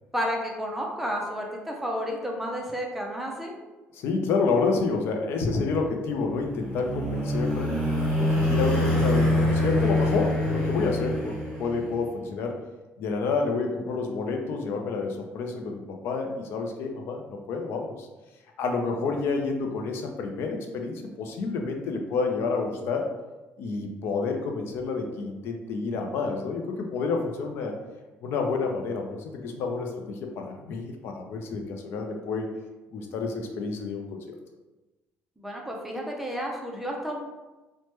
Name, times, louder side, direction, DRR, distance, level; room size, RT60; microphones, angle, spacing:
voice 1, 0.1-3.6 35.4-37.2, equal, 5° right, -1 dB, 0.4 m, -31 dB
voice 2, 3.9-7.8 8.2-12.6 13.0-18.1 18.6-23.1 23.6-27.8 28.2-32.5 32.9-34.2, left 4 dB, 60° left, 3 dB, 0.4 m, -29 dB
sound 1, 6.2-12.0, left 1 dB, 15° left, 0.8 m, -25 dB
3.1 x 2.1 x 3.0 m, 1.1 s
cardioid pair, 165°, 4 cm